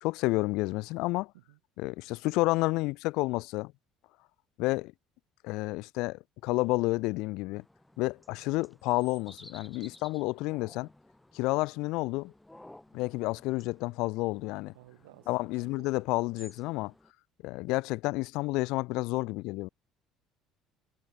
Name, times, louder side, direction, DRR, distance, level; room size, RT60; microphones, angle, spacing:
voice 1, 0.0-1.3 1.8-3.7 4.6-4.9 5.4-7.6 8.0-10.9 11.3-12.3 12.9-14.7 15.3-16.9 17.4-19.7, left 22 dB, 75° left, 0.6 m, -30 dB
sound 1, 7.5-17.1, left 1 dB, 10° left, 3.9 m, -56 dB
voice 2, 14.7-15.9, right 19 dB, 85° right, 3.9 m, -55 dB
hypercardioid pair, 75°, 0 cm